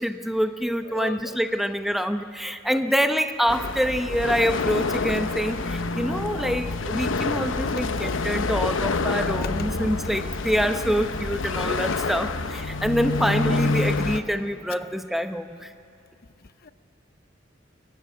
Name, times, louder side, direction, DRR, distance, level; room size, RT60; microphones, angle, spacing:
voice 1, 0.0-15.7, equal, ahead, 8 dB, 0.7 m, -26 dB
voice 2, 0.8-1.6 2.7-3.1 16.4-16.7, left 3 dB, 50° left, 12 dB, 0.7 m, -38 dB
sound 1, 3.5-14.2, left 3 dB, 90° left, 0.9 m, -27 dB
23.5 x 15.0 x 9.7 m, 2.4 s
head